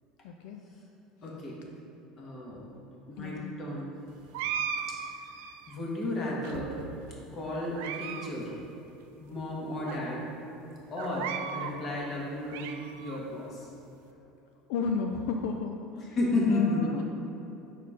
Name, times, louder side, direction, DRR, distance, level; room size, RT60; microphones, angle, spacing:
voice 1, 0.2-0.6 3.2-3.6 14.7-16.2 16.5-17.0, left 4 dB, 75° left, 3 dB, 0.3 m, -33 dB
voice 2, 1.2-1.6 2.2-2.7 3.1-3.9 4.9-5.0 5.7-6.8 7.3-8.5 9.2-10.3 10.9-12.7 13.0-13.7 16.1-16.9, left 2 dB, 35° left, -3 dB, 1.4 m, -32 dB
sound 1, 4.3-5.8 6.4-7.1 7.6-8.3 8.6-8.7 9.4-9.5 9.9-10.0 11.0-11.8 12.2-13.2, right 8 dB, 85° right, 0.4 m, -37 dB
4.9 x 4.2 x 5.5 m, 3.0 s
cardioid pair, 145°, 0 cm